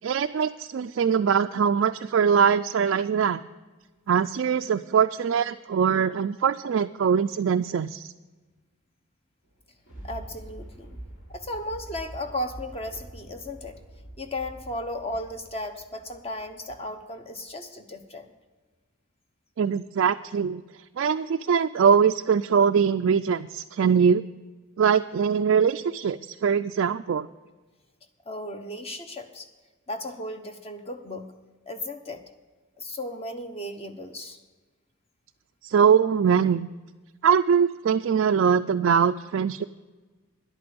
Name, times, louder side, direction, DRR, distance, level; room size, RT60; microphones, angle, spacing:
voice 1, 0.0-3.4 4.1-8.1 19.6-20.6 21.0-24.2 24.8-27.3 35.6-36.7 37.2-39.6, right 7 dB, 55° right, 7 dB, 0.3 m, -22 dB
Thunder, 9.4-17.0 17.5-17.6, right 1 dB, 60° left, 3.1 m, -45 dB
voice 2, 10.0-11.0 11.3-13.8 14.2-18.3 28.3-29.5 29.9-31.3 31.7-32.2 32.8-34.4, left 1 dB, 25° left, 7 dB, 0.9 m, -35 dB
11.0 x 8.7 x 6.9 m, 1.3 s
head